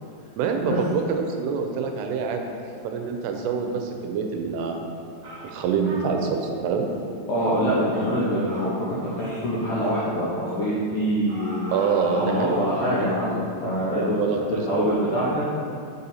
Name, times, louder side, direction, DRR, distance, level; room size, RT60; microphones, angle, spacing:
voice 1, 0.4-2.5 2.8-4.8 5.4-6.9 11.7-12.6 14.1-15.2, right 5 dB, 85° right, 3 dB, 2.6 m, -26 dB
sound 1, 4.6-4.8 5.2-5.5 5.8-6.5 6.9-7.1 7.4-7.6 7.9-8.2 8.4-8.7 9.2-9.5 9.8-10.0 10.4-10.7 11.3-13.3, right 1 dB, 60° right, 2.3 m, -39 dB
voice 2, 7.3-11.6 12.1-14.2 14.7-15.4, equal, 80° left, -9 dB, 1.8 m, -24 dB
6.2 x 4.1 x 4.0 m, 2.5 s
omnidirectional pair, 4.8 m